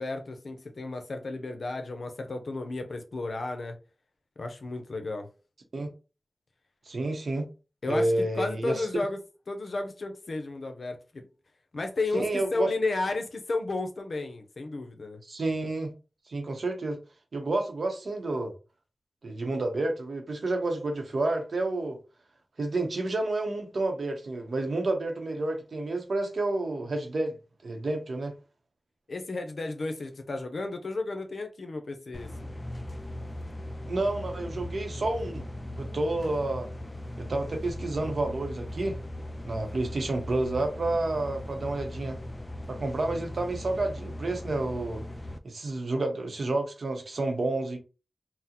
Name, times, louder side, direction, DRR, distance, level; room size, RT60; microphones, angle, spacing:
voice 1, 0.0-3.8 4.4-5.3 7.8-9.2 9.5-11.3 11.7-15.2 29.1-32.3, left 3 dB, 75° left, 0.6 m, -33 dB
voice 2, 6.9-7.5 7.9-9.0 12.1-12.7 15.3-15.9 16.3-17.0 17.3-18.5 19.2-22.0 22.6-27.4 27.6-28.4 33.9-35.5 35.8-36.7 37.2-39.0 39.4-42.2 42.7-45.0 45.4-47.8, right 2 dB, 80° right, 0.7 m, -30 dB
sound 1, 32.1-45.4, left 1 dB, 25° left, 0.4 m, -39 dB
3.7 x 2.0 x 2.8 m
wide cardioid pair, 55°, 0 cm